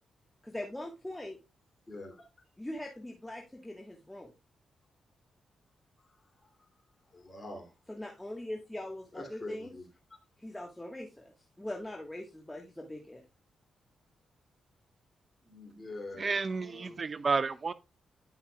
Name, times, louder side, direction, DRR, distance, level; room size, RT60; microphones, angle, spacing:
voice 1, 0.4-1.4 2.6-4.3 7.9-9.7 10.4-13.2, left 1 dB, 10° left, 1.6 m, -41 dB
voice 2, 1.9-2.2 7.1-7.7 9.1-9.8 10.1-10.2 15.4-17.0, left 2 dB, 30° left, 2.8 m, -45 dB
voice 3, 16.2-17.7, right 4 dB, 45° right, 0.5 m, -31 dB
10.5 x 5.6 x 2.4 m
supercardioid pair, 50°, 0 cm